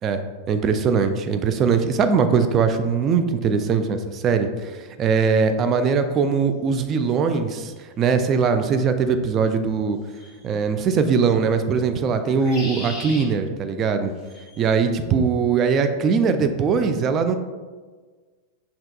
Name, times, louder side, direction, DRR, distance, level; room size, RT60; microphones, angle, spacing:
voice 1, 0.5-10.0 10.4-14.1 14.6-17.3, right 5 dB, 30° right, 8 dB, 0.3 m, -21 dB
sound 1, 7.6-7.7 10.1-10.5 12.2-13.3 14.2-14.6, left 2 dB, 10° left, 1.3 m, -37 dB
5.6 x 2.8 x 2.3 m, 1.4 s
figure-of-eight pair, 90°, 0 cm